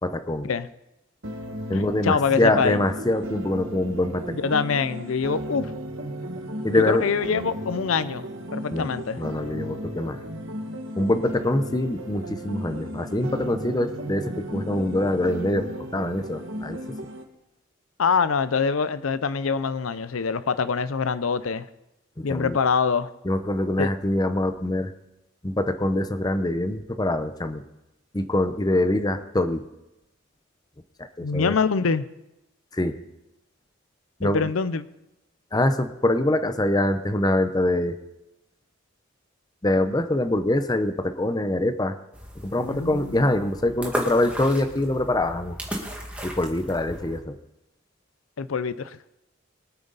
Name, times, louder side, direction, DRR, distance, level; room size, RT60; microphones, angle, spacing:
voice 1, 0.0-0.5 1.7-4.5 6.6-7.0 8.7-8.9 9.2-10.2 10.9-15.7 15.9-16.8 22.2-22.6 23.2-24.9 25.4-27.6 28.1-29.6 31.0-31.5 32.7-32.9 34.2-34.5 35.5-38.0 39.6-42.0 42.4-45.6 46.2-47.4, left 1 dB, 20° left, 9 dB, 0.7 m, -24 dB
sound 1, 1.2-17.2, equal, 70° right, 1.7 m, -35 dB
voice 2, 1.7-2.8 4.4-5.7 6.9-8.3 8.5-9.2 18.0-21.7 22.2-23.1 23.8-23.9 31.2-32.0 34.2-34.8 42.6-43.3 48.4-49.1, left 5 dB, 85° left, 15 dB, 0.6 m, -25 dB
sound 2, 42.1-47.2, equal, 5° right, 2.0 m, -35 dB
23.0 x 8.8 x 4.0 m, 0.92 s
head